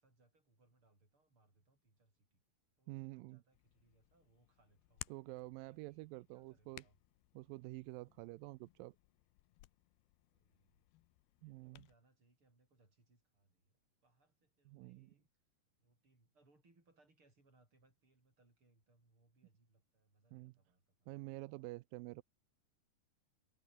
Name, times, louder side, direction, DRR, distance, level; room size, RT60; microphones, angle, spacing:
voice 1, 0.0-2.4 2.8-5.1 5.6-7.0 7.9-8.2 10.3-10.9 11.4-15.3 15.8-21.2, right 2 dB, 30° right, 8.8 m, -74 dB
voice 2, 2.9-3.4 5.1-6.8 7.4-9.0 11.4-11.9 14.7-15.1 20.3-20.5 21.1-22.2, right 21 dB, 80° right, 2.1 m, -49 dB
Hands, 3.5-11.9, left 18 dB, 85° left, 2.8 m, -59 dB
omnidirectional pair, 4.6 m